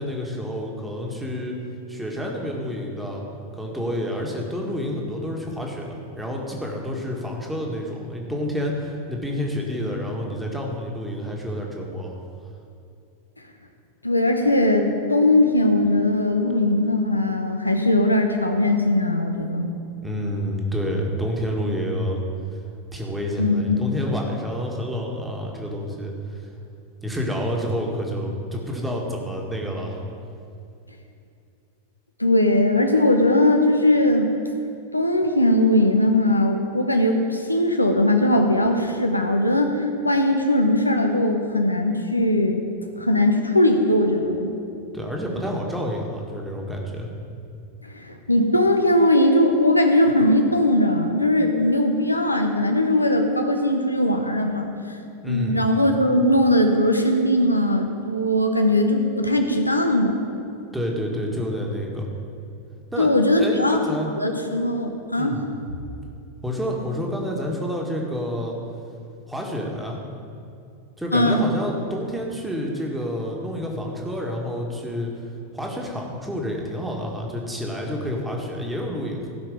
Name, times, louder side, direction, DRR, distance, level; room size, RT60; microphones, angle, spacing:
voice 1, 0.0-1.6 1.9-3.2 3.5-12.1 20.0-22.2 22.9-26.4 27.0-30.0 44.9-47.1 55.2-55.6 60.7-62.1 62.9-63.1 63.4-64.1 65.2-65.4 66.4-68.5 69.3-70.0 71.0-75.1 75.5-79.3, equal, 5° right, -1 dB, 1.8 m, -29 dB
voice 2, 14.0-19.7 23.4-23.8 32.2-34.3 34.9-42.6 43.0-44.5 47.8-54.7 55.3-60.1 63.0-63.8 64.2-65.4 71.1-71.5, left 1 dB, 85° left, 4 dB, 1.0 m, -20 dB
16.0 x 5.8 x 5.1 m, 2.6 s
figure-of-eight pair, 90°, 0 cm